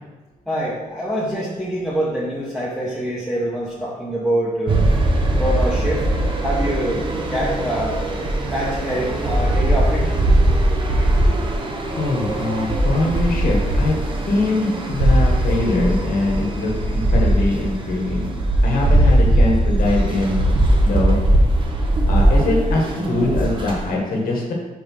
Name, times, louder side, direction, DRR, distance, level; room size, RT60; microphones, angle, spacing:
voice 1, 0.5-4.8 5.4-6.0 6.4-7.0 7.3-8.0 8.5-10.1, right 1 dB, ahead, -8 dB, 1.1 m, -24 dB
sound 1, 4.7-23.9, right 1 dB, 35° right, 0.9 m, -19 dB
voice 2, 11.9-14.0 14.3-18.3 18.6-20.4 20.8-21.2 22.1-24.5, left 2 dB, 75° left, -1 dB, 1.7 m, -22 dB
5.1 x 4.8 x 5.6 m, 1.2 s
wide cardioid pair, 150°, 15 cm